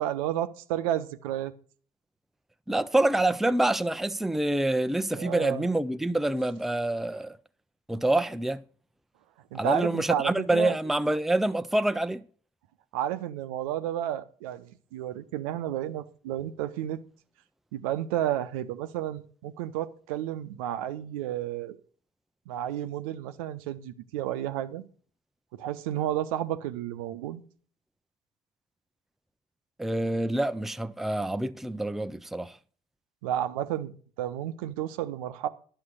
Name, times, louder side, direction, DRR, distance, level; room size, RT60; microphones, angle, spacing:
voice 1, 0.0-1.5 5.1-5.7 9.5-10.8 12.9-17.0 17.7-21.8 22.5-24.8 25.5-27.4 33.2-35.5, right 11 dB, 70° right, 0.8 m, -31 dB
voice 2, 2.7-7.4 7.9-8.6 9.5-12.2 29.8-32.5, right 1 dB, ahead, 0.6 m, -26 dB
11.0 x 6.5 x 6.4 m
figure-of-eight pair, 50°, 19 cm